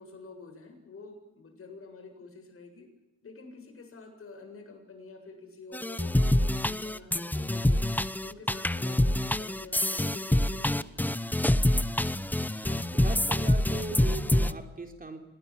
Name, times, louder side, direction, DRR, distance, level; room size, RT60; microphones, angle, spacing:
voice 1, 0.0-2.9 3.2-7.9 8.2-11.4, left 3 dB, 45° left, 4 dB, 7.8 m, -48 dB
sound 1, 5.7-14.5, left 1 dB, 5° left, 0.9 m, -26 dB
voice 2, 12.6-15.2, right 3 dB, 30° right, 5 dB, 3.9 m, -39 dB
26.5 x 19.5 x 8.9 m, 0.90 s
cardioid pair, 90°, 30 cm